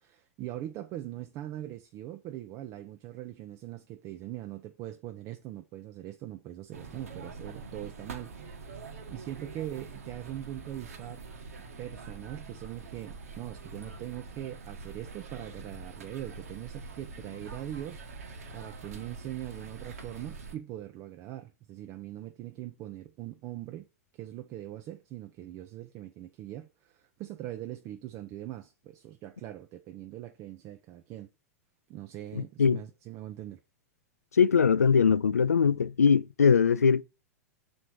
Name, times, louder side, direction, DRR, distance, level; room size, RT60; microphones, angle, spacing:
voice 1, 0.0-8.3 8.6-11.2 11.8-18.0 18.5-23.9 24.1-31.3 31.9-33.6, right 13 dB, 40° right, 0.7 m, -41 dB
sound 1, 6.7-20.6, right 4 dB, 75° right, 1.5 m, -45 dB
voice 2, 32.4-32.8 34.4-37.0, left 6 dB, 85° left, 0.4 m, -22 dB
6.4 x 4.4 x 4.7 m
figure-of-eight pair, 100°, 8 cm